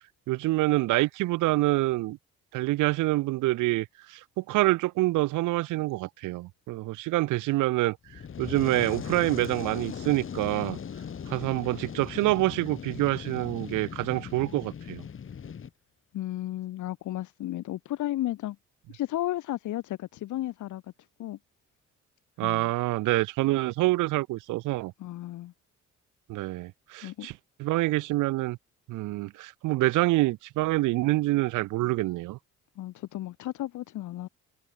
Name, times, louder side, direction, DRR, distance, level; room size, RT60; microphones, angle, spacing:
voice 1, 0.3-2.2 2.5-10.8 11.3-15.0 22.4-24.9 26.3-27.3 27.6-28.6 28.9-32.4, right 19 dB, 85° right, 0.6 m, -26 dB
Fire, 8.0-15.7, left 7 dB, 45° left, 1.8 m, -38 dB
voice 2, 16.1-18.6 18.9-20.8 21.2-21.4 22.4-22.7 25.0-25.5 27.0-27.3 32.8-34.3, left 14 dB, 80° left, 1.4 m, -33 dB
cardioid pair, 90°, 30 cm